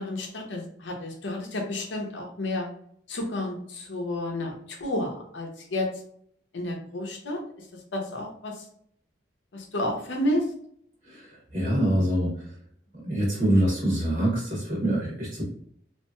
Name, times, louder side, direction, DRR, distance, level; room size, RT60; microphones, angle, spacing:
voice 1, 0.0-2.7 3.1-5.9 6.5-7.4 7.9-8.6 9.5-10.5, left 1 dB, 85° left, 1 dB, 0.7 m, -31 dB
voice 2, 11.1-12.5 13.0-15.4, right 1 dB, 45° right, -3 dB, 0.9 m, -25 dB
3.0 x 2.5 x 2.2 m, 0.65 s
head